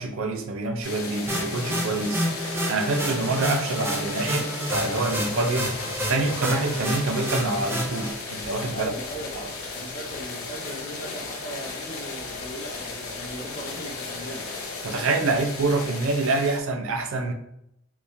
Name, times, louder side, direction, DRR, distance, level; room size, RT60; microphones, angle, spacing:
voice 1, 0.0-5.7 6.1-8.9 9.3-9.4 14.8-17.3, right 3 dB, 70° right, 6 dB, 0.5 m, -26 dB
sound 1, 0.8-16.6, left 3 dB, 90° left, 0.7 m, -35 dB
sound 2, 1.3-8.1, equal, 10° right, 0.5 m, -29 dB
voice 2, 8.7-14.4 14.9-15.0, right 1 dB, 35° left, -2 dB, 0.7 m, -39 dB
3.5 x 3.0 x 2.6 m, 0.78 s
head